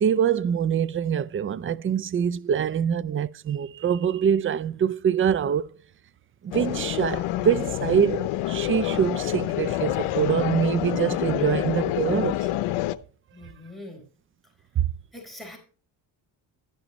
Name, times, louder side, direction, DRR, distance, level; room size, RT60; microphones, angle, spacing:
voice 1, 0.0-5.7 6.4-12.3 14.8-14.9, right 8 dB, 30° right, 0.3 m, -24 dB
sound 1, 6.5-13.0, left 15 dB, 90° left, 0.7 m, -27 dB
voice 2, 13.3-14.0 15.1-15.6, left 1 dB, ahead, 4.2 m, -42 dB
11.5 x 10.5 x 3.0 m
cardioid pair, 95°, 48 cm